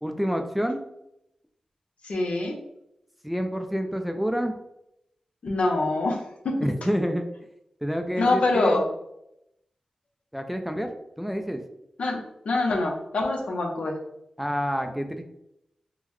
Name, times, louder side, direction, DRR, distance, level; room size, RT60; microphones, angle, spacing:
voice 1, 0.0-0.8 3.2-4.6 6.6-7.3 7.8-8.8 10.3-10.9 11.2-11.6 14.4-15.2, equal, 5° right, 5 dB, 0.3 m, -28 dB
voice 2, 2.0-2.6 5.4-6.6 8.2-8.8 12.0-14.0, left 2 dB, 70° left, 1 dB, 0.6 m, -25 dB
3.7 x 2.1 x 3.0 m, 0.82 s
wide cardioid pair, 75°, 2 cm